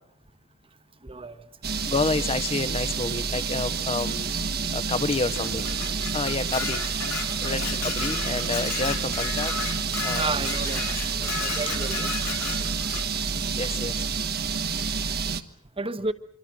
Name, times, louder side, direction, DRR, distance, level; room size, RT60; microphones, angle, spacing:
voice 1, 1.0-1.4 9.0-9.1 10.1-10.9 11.2-12.1 15.8-16.1, right 3 dB, 25° right, 1.2 m, -31 dB
sound 1, 1.6-15.4, right 5 dB, 45° right, 1.3 m, -29 dB
voice 2, 1.8-4.3 4.7-6.8 7.4-9.5 10.0-10.4 13.6-14.0, left 3 dB, 25° left, 0.9 m, -29 dB
Dishes pots and pans, 5.4-13.1, left 6 dB, 75° left, 3.7 m, -34 dB
sound 2, 5.5-14.0 14.2-15.1, right 1 dB, 70° right, 2.2 m, -47 dB
26.0 x 24.0 x 6.3 m
head